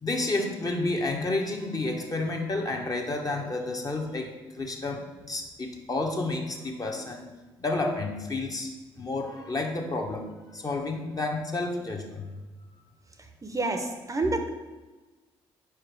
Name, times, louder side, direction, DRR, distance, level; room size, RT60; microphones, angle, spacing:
voice 1, 0.0-4.3 4.6-7.2 7.6-8.7 9.0-12.3, left 2 dB, 30° left, 1 dB, 1.0 m, -30 dB
voice 2, 13.2-14.5, right 2 dB, 25° right, 5 dB, 0.7 m, -29 dB
4.9 x 4.5 x 4.6 m, 1.2 s
figure-of-eight pair, 45°, 13 cm